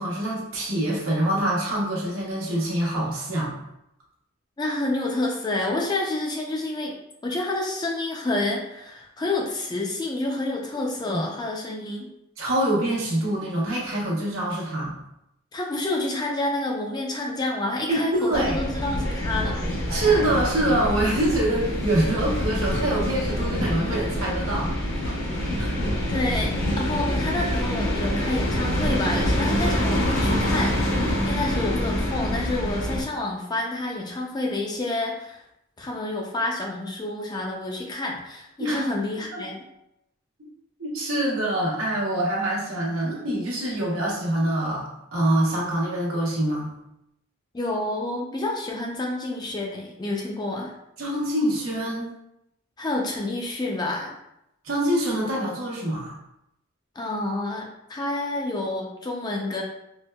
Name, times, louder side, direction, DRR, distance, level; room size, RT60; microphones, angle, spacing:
voice 1, 0.0-3.5 11.1-11.2 12.4-14.9 17.9-18.6 19.9-25.2 25.6-25.8 38.6-38.8 39.3-39.4 40.8-46.7 51.0-52.1 54.6-56.1, right 1 dB, 85° right, -4 dB, 1.0 m, -25 dB
voice 2, 4.6-6.9 7.2-12.1 15.5-19.6 26.1-35.4 35.8-39.6 47.5-50.7 52.8-54.1 57.0-59.6, left 2 dB, 20° left, -1 dB, 0.4 m, -29 dB
sound 1, 18.3-33.0, equal, 75° left, 0.7 m, -26 dB
4.3 x 2.1 x 2.2 m, 0.82 s
head